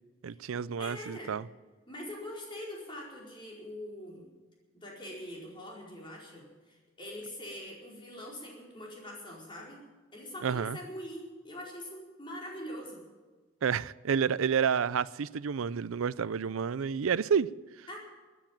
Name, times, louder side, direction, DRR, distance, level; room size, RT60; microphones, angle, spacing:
voice 1, 0.2-1.4 10.4-10.8 13.6-17.5, right 7 dB, 85° right, 0.5 m, -29 dB
voice 2, 0.8-1.3 1.9-4.3 4.7-9.9 10.1-13.0 17.9-18.0, left 1 dB, 25° left, 4.6 m, -43 dB
14.5 x 10.0 x 9.0 m
head